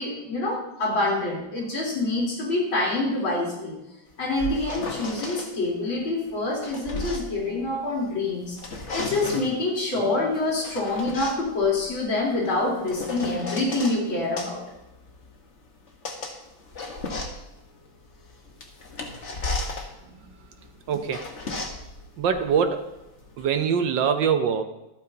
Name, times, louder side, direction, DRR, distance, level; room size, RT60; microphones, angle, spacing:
voice 1, 0.0-3.8 4.2-8.6 8.9-14.6, left 2 dB, 75° left, -5 dB, 4.7 m, -26 dB
sound 1, 4.1-5.5 6.3-8.1 8.4-9.6 10.3-14.0 14.4-23.4, left 3 dB, 40° left, 1.6 m, -35 dB
voice 2, 20.9-21.3 22.2-22.9 23.4-24.6, right 7 dB, 70° right, 8 dB, 1.4 m, -23 dB
25.5 x 8.9 x 2.9 m, 0.96 s
omnidirectional pair, 2.2 m